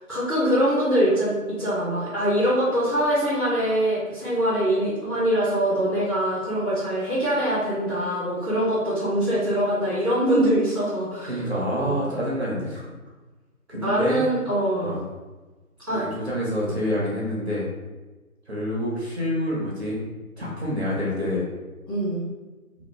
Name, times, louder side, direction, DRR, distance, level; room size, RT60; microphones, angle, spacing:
voice 1, 0.1-11.4 11.8-12.0 13.8-14.9 15.9-16.0 16.6-16.7 21.9-22.2, right 1 dB, 15° left, -17 dB, 1.2 m, -23 dB
voice 2, 11.2-12.9 13.7-14.2 14.8-15.1 16.1-17.7 18.5-20.0 20.4-21.4, equal, 45° right, -5 dB, 0.8 m, -27 dB
2.9 x 2.4 x 3.4 m, 1.2 s
figure-of-eight pair, 165°, 44 cm